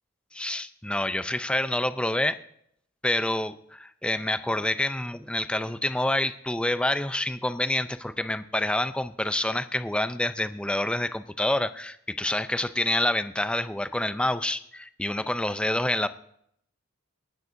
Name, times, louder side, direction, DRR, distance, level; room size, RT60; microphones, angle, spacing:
voice 1, 0.3-2.4 3.0-16.1, left 1 dB, 5° left, 12 dB, 0.4 m, -27 dB
28.5 x 9.5 x 2.6 m, 0.72 s
head